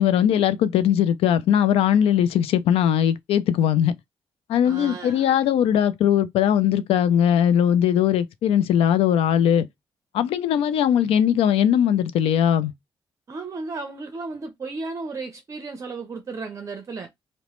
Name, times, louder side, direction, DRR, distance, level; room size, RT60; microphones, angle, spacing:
voice 1, 0.0-3.9 4.5-9.7 10.1-12.7, left 9 dB, 85° left, 0.3 m, -20 dB
voice 2, 4.6-5.3 13.3-17.1, right 3 dB, 35° right, 0.5 m, -34 dB
2.9 x 2.0 x 3.0 m
cardioid pair, 100°, 10 cm